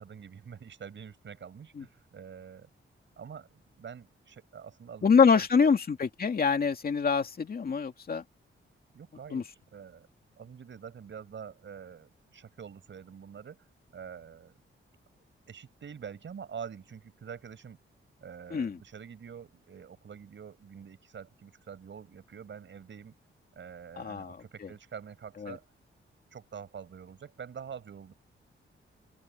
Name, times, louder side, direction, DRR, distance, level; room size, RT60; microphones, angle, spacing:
voice 1, 0.0-2.7 3.2-5.7 8.9-10.1 10.4-13.7 13.9-14.6 15.5-17.8 18.2-23.2 23.5-25.6 26.3-28.1, right 7 dB, 60° right, 6.1 m, -46 dB
voice 2, 5.0-8.2 9.3-9.4 18.5-18.8 24.0-24.7 25.4-25.6, left 5 dB, 45° left, 2.4 m, -25 dB
open air
wide cardioid pair, 155°, 21 cm